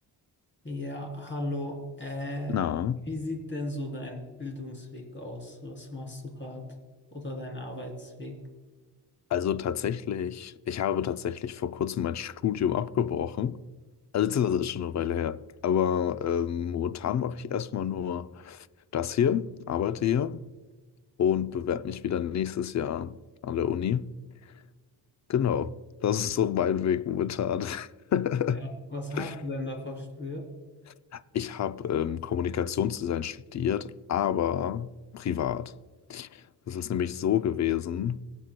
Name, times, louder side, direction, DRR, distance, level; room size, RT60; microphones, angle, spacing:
voice 1, 0.6-2.5 3.0-6.6 7.1-8.4 28.5-30.5, left 1 dB, 25° left, 3.1 m, -36 dB
voice 2, 2.5-3.0 9.3-13.6 14.1-18.7 18.9-20.4 21.2-23.2 23.4-24.0 25.3-25.8 26.0-28.6 29.2-29.3 31.1-35.7 36.1-38.2, left 9 dB, 45° left, 0.5 m, -28 dB
24.0 x 8.3 x 2.2 m
cardioid pair, 90°, 42 cm